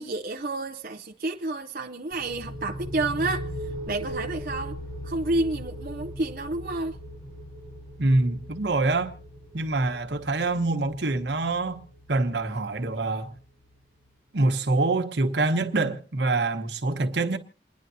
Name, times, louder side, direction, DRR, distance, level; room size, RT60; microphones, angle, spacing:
voice 1, 0.0-3.5 3.9-4.8 5.0-7.0, right 2 dB, 50° right, 0.6 m, -30 dB
sound 1, 2.1-13.6, equal, 25° left, 6.8 m, -39 dB
voice 2, 8.0-9.1 9.5-11.8 12.1-13.3 14.3-17.4, right 2 dB, 80° right, 1.2 m, -25 dB
28.5 x 10.5 x 2.7 m
head